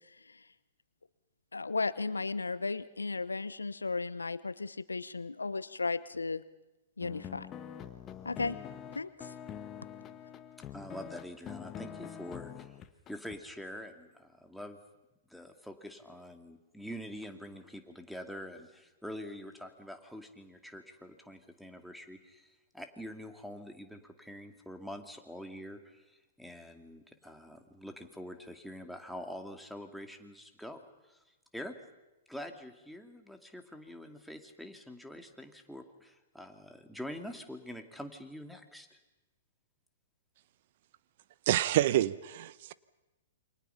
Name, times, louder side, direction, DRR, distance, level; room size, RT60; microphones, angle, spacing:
voice 1, 1.5-6.4 7.0-7.5 8.2-8.6 8.9-9.3, left 3 dB, 85° left, 16 dB, 0.9 m, -35 dB
sound 1, 7.0-13.4, left 9 dB, 25° left, 1.5 m, -45 dB
voice 2, 10.7-12.8 13.1-14.8 15.3-31.7 32.3-39.0, equal, ahead, 4 dB, 2.4 m, -45 dB
voice 3, 41.5-42.7, right 13 dB, 50° right, 17 dB, 0.9 m, -28 dB
28.5 x 25.0 x 5.8 m, 1.0 s
figure-of-eight pair, 115°, 0 cm